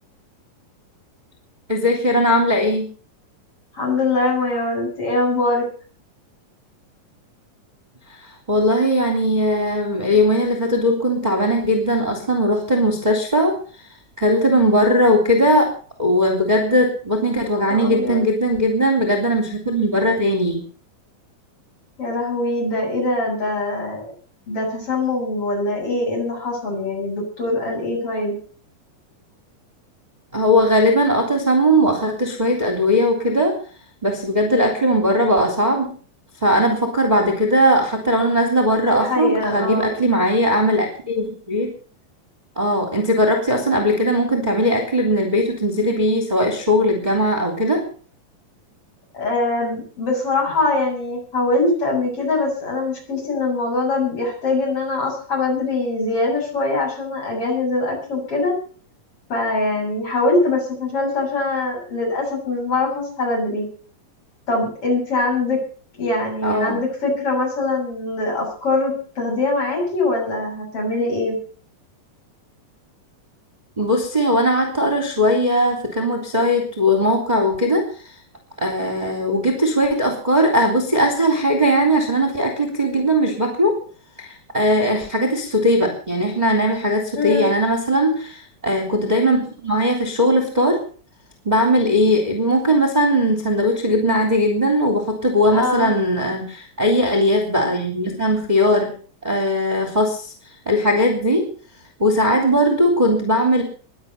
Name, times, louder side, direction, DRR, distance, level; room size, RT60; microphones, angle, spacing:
voice 1, 1.7-2.9 8.5-13.5 14.2-15.7 16.0-20.6 30.3-33.5 34.0-35.9 36.4-41.7 42.5-47.8 66.4-66.8 73.8-77.8 78.6-83.7 84.2-90.8 91.4-98.9 99.2-100.3 100.6-101.5 102.0-103.6, equal, 10° right, 3 dB, 3.2 m, -19 dB
voice 2, 3.8-5.7 17.6-18.2 22.0-24.1 24.5-28.3 38.8-39.9 49.1-58.5 59.3-63.7 64.5-65.6 66.0-71.4 87.1-87.5 95.5-95.9, left 2 dB, 40° left, -1 dB, 8.3 m, -23 dB
21.5 x 8.5 x 6.8 m, 0.43 s
omnidirectional pair, 4.0 m